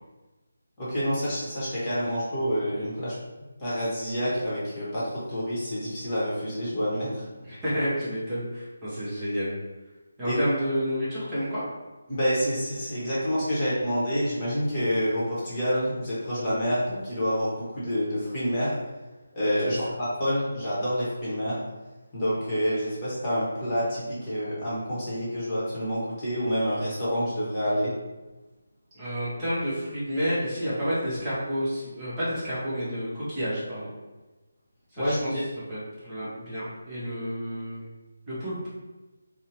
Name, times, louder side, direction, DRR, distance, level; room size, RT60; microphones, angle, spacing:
voice 1, 0.8-3.1 3.6-7.3 10.2-10.4 12.1-18.8 19.3-21.6 22.1-27.9 35.0-35.4, equal, 25° left, -9 dB, 1.0 m, -28 dB
voice 2, 7.4-9.5 10.2-11.6 19.6-19.7 28.9-33.9 34.9-35.4 35.7-37.9 38.3-38.6, equal, 20° right, -11 dB, 0.9 m, -30 dB
2.7 x 2.0 x 2.9 m, 1.1 s
figure-of-eight pair, 155°, 0 cm